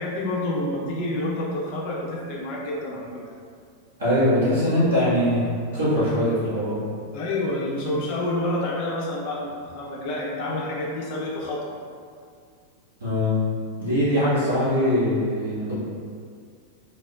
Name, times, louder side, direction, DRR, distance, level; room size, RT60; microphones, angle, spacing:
voice 1, 0.0-3.2 7.1-11.8, left 1 dB, 45° left, -4 dB, 0.6 m, -28 dB
voice 2, 4.0-5.4 5.7-6.8 13.0-13.4 13.8-15.7, left 1 dB, 70° right, -12 dB, 1.2 m, -22 dB
3.9 x 2.1 x 2.3 m, 2.1 s
figure-of-eight pair, 90°, 0 cm